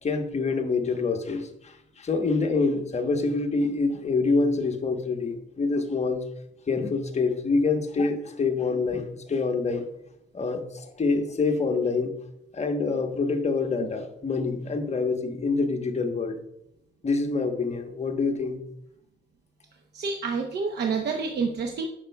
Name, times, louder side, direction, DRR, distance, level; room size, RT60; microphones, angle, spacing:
voice 1, 0.0-6.2 6.7-9.8 10.3-12.1 12.5-16.4 17.0-18.6, left 4 dB, 30° left, 5 dB, 1.0 m, -26 dB
voice 2, 19.9-21.9, right 5 dB, 50° right, 3 dB, 0.8 m, -28 dB
8.7 x 6.5 x 2.2 m, 0.81 s
supercardioid pair, 85°, 21 cm